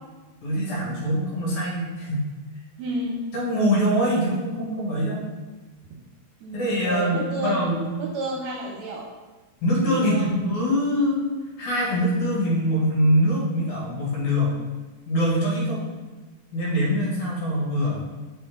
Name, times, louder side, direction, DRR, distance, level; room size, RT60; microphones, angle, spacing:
voice 1, 0.4-2.2 3.3-5.3 6.5-7.8 9.6-11.3 11.6-14.5 15.1-15.8 16.5-18.0, equal, 70° left, -4 dB, 2.9 m, -23 dB
voice 2, 2.8-3.2 6.4-7.6 8.0-9.1 10.0-10.3, right 1 dB, 70° right, -2 dB, 1.7 m, -31 dB
7.0 x 4.2 x 3.6 m, 1.3 s
omnidirectional pair, 3.6 m